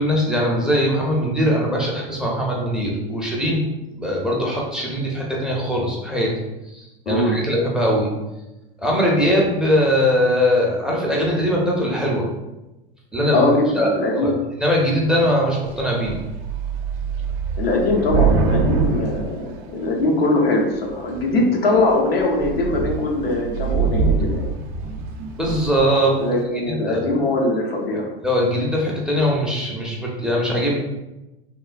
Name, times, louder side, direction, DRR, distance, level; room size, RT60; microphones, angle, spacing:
voice 1, 0.0-3.6 4.0-6.4 6.7-8.1 8.8-12.3 13.1-13.5 13.7-14.3 14.6-16.2 25.4-26.2 26.5-27.1 28.2-30.8, equal, ahead, -3 dB, 0.5 m, -21 dB
voice 2, 7.1-7.4 13.3-14.3 17.6-24.4 26.2-28.1, left 2 dB, 90° left, 0 dB, 0.7 m, -21 dB
Thunder / Rain, 15.7-15.8 16.0-20.2 20.9-21.3 21.8-21.9 22.2-25.9, right 5 dB, 55° right, 0.5 m, -24 dB
2.9 x 2.1 x 2.4 m, 1.0 s
hypercardioid pair, 95°, 29 cm